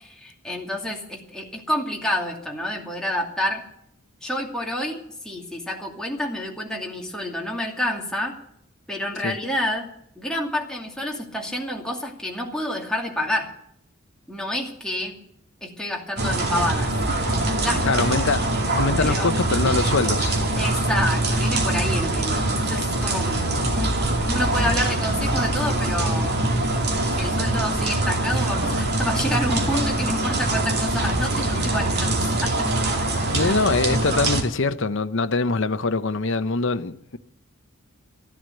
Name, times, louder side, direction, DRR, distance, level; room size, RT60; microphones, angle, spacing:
voice 1, 0.0-3.6 4.2-8.4 8.9-9.9 10.2-13.5 14.3-15.2 15.6-16.9 17.6-18.0 18.8-19.3 20.6-26.3 27.2-32.7 33.4-33.5, left 1 dB, 5° left, 2.5 m, -28 dB
sound 1, 16.2-34.4, right 2 dB, 50° right, 2.5 m, -23 dB
voice 2, 17.8-20.4 33.3-37.2, left 3 dB, 60° left, 0.8 m, -23 dB
14.5 x 11.0 x 7.8 m
head